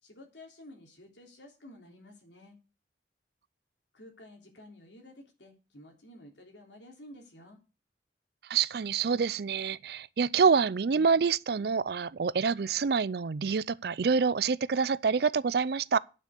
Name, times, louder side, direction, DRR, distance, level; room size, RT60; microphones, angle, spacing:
voice 1, 0.0-2.6 3.9-7.6, left 1 dB, 90° left, 3.4 m, -52 dB
voice 2, 8.5-16.0, right 5 dB, 60° right, 0.4 m, -27 dB
9.7 x 6.2 x 8.0 m
head